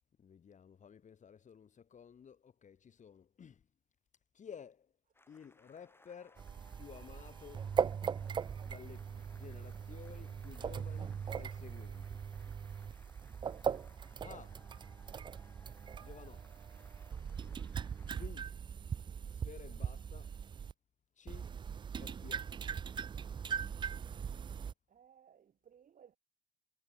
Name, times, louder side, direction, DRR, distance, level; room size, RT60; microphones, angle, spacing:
voice 1, 0.2-3.6 4.3-4.9 5.3-6.5 6.8-7.8 8.6-12.2 14.2-14.7 16.0-16.6 18.0-18.6 19.3-20.4 21.2-21.5 22.0-22.7, left 7 dB, 40° left, 2.0 m, -54 dB
sound 1, 5.1-18.3, left 2 dB, 10° left, 6.3 m, -65 dB
sound 2, 6.4-20.7 21.3-24.7, right 7 dB, 25° right, 0.3 m, -40 dB
voice 2, 24.9-26.2, right 8 dB, 45° right, 2.4 m, -62 dB
supercardioid pair, 80°, 19 cm